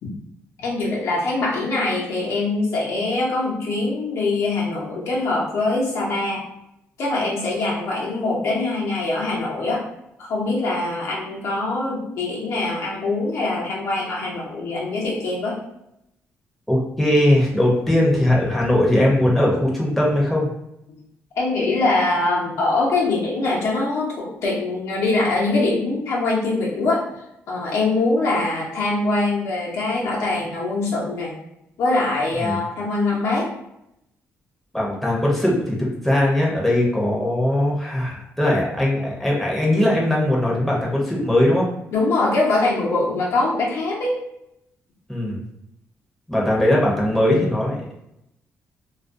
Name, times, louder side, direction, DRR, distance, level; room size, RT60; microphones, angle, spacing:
voice 1, 0.6-6.4 7.0-9.8 10.2-15.6 20.9-21.0 21.3-27.0 27.5-31.3 31.8-33.5 41.9-44.2, left 2 dB, 75° left, -3 dB, 0.7 m, -23 dB
voice 2, 16.7-20.5 32.4-32.6 34.7-41.7 45.1-45.4 46.3-47.8, left 1 dB, 5° left, -4 dB, 0.6 m, -20 dB
2.3 x 2.1 x 2.5 m, 0.82 s
cardioid pair, 120°, 5 cm